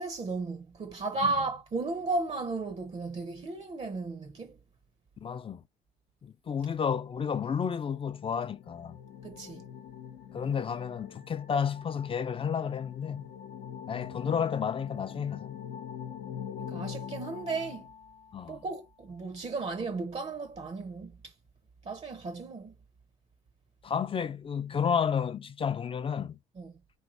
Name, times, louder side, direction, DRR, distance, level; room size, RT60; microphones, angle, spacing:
voice 1, 0.0-4.6 9.2-9.6 16.6-17.9 18.5-21.3 21.8-22.7 26.6-26.7, right 3 dB, 35° right, 0.6 m, -34 dB
voice 2, 5.2-5.6 6.2-9.0 10.3-13.3 13.9-15.6 18.3-18.6 23.8-26.4, left 7 dB, 30° left, 0.4 m, -31 dB
sound 1, 8.0-18.5, left 8 dB, 80° left, 0.6 m, -43 dB
3.2 x 2.5 x 2.6 m
supercardioid pair, 65°, 18 cm